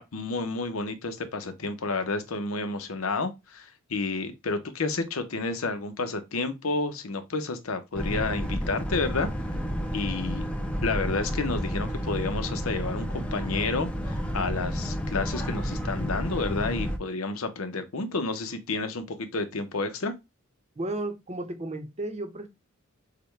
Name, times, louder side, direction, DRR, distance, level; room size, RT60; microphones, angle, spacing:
voice 1, 0.0-9.3 9.9-10.5 10.8-20.1, left 3 dB, 80° left, 0.8 m, -30 dB
Boat Water vehicle, 7.9-17.0, equal, 5° left, 0.6 m, -31 dB
voice 2, 20.8-22.5, right 2 dB, 30° right, 0.8 m, -33 dB
6.6 x 2.3 x 3.2 m
head